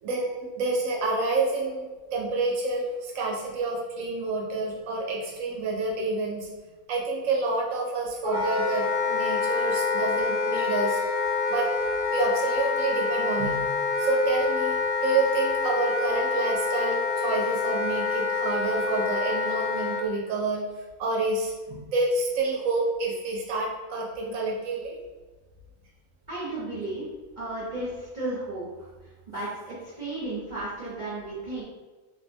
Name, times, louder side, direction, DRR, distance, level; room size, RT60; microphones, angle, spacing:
voice 1, 0.0-1.8 2.1-6.5 6.9-11.0 11.5-11.7 12.1-13.6 14.0-20.6 21.0-25.0, right 3 dB, 90° right, -2 dB, 1.0 m, -28 dB
Wind instrument woodwind instrument, 8.2-20.0, left 4 dB, 50° left, 1.1 m, -27 dB
voice 2, 26.3-27.0 27.4-28.6 29.3-31.6, right 2 dB, 40° right, -11 dB, 0.8 m, -33 dB
3.1 x 2.0 x 2.6 m, 1.2 s
omnidirectional pair, 1.3 m